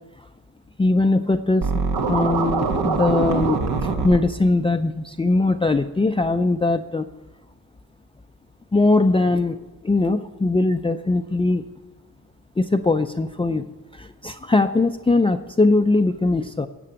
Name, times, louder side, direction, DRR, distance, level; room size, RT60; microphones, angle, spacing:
voice 1, 0.8-1.7 2.1-7.1 8.7-9.6 9.8-11.6 12.6-13.7 13.9-16.7, left 2 dB, 15° left, 6 dB, 0.5 m, -20 dB
Scratching (performance technique), 1.6-4.2, right 4 dB, 75° right, 2.0 m, -23 dB
17.0 x 6.9 x 8.7 m, 1.2 s
cardioid pair, 95°, 38 cm